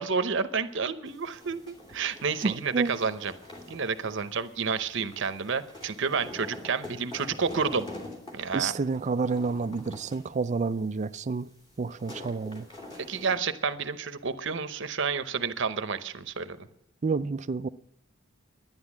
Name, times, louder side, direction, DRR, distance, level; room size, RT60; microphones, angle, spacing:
voice 1, 0.0-3.3 3.7-7.9 8.3-8.7 13.1-16.6, right 5 dB, 60° right, 0.8 m, -30 dB
sound 1, 1.0-13.4, left 2 dB, 20° left, 2.8 m, -46 dB
voice 2, 2.4-2.9 8.5-11.5 11.8-12.7 17.0-17.7, right 4 dB, 35° right, 0.4 m, -29 dB
11.5 x 10.5 x 7.3 m
head